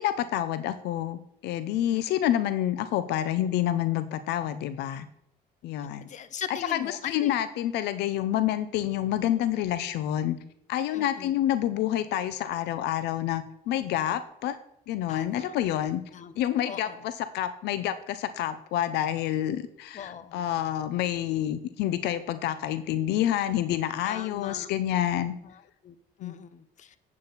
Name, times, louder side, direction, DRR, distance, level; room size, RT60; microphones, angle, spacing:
voice 1, 0.0-5.1 5.6-6.1 6.5-10.4 10.7-14.6 14.9-16.0 16.4-25.3 26.2-26.4, left 12 dB, 85° left, 13 dB, 0.7 m, -28 dB
voice 2, 6.1-7.3 10.9-11.4 15.1-15.6 16.1-16.3 16.7-17.1 19.9-20.4 24.0-24.7 25.4-27.0, left 8 dB, 45° left, 13 dB, 0.7 m, -41 dB
8.6 x 8.3 x 4.1 m, 0.70 s
cardioid pair, 110°, 17 cm